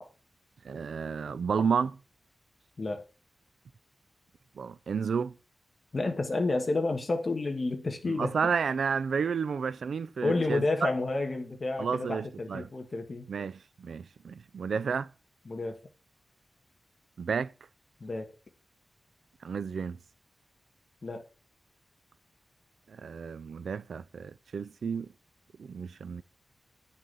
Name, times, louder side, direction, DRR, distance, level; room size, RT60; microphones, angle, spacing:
voice 1, 0.6-1.9 4.6-5.4 8.1-10.9 11.8-12.7 13.3-15.1 17.2-17.5 19.4-20.0 22.9-25.1 25.6-26.2, right 6 dB, 80° right, 0.4 m, -31 dB
voice 2, 5.9-8.4 10.2-13.3 15.4-15.8 18.0-18.3 21.0-21.3, left 3 dB, 35° left, 1.7 m, -30 dB
9.3 x 6.4 x 5.5 m
wide cardioid pair, 160°, 0 cm